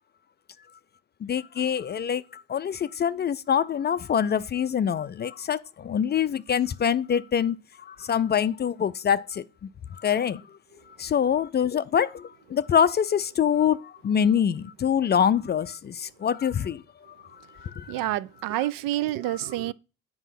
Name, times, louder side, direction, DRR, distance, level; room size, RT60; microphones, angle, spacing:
voice 1, 1.2-9.4 9.9-10.6 11.0-16.8 17.1-17.2 17.5-17.9, left 8 dB, 30° left, 0.4 m, -25 dB
voice 2, 17.9-19.7, right 15 dB, 65° right, 0.5 m, -28 dB
8.1 x 4.7 x 5.8 m
supercardioid pair, 75°, 37 cm